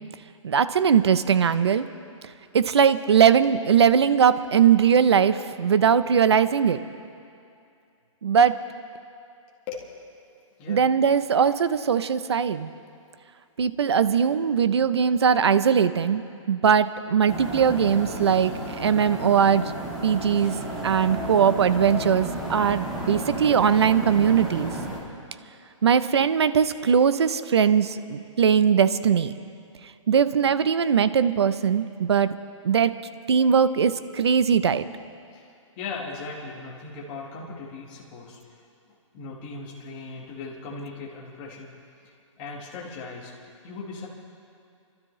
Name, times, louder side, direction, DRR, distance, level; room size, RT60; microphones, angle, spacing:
voice 1, 0.4-1.9 2.5-6.8 8.2-8.6 10.7-12.7 13.6-18.5 18.8-19.7 20.0-20.5 20.8-24.7 25.8-29.3 30.1-32.3 32.6-32.9 33.3-34.8, right 7 dB, 55° right, 13 dB, 0.6 m, -20 dB
voice 2, 10.3-10.8 35.3-38.6 39.1-41.7 42.0-43.3 43.6-44.1, left 4 dB, 15° left, -3 dB, 1.4 m, -38 dB
sound 1, 17.3-25.0, right 1 dB, 5° right, 0.4 m, -33 dB
29.5 x 12.5 x 3.1 m, 2.5 s
hypercardioid pair, 180°, 17 cm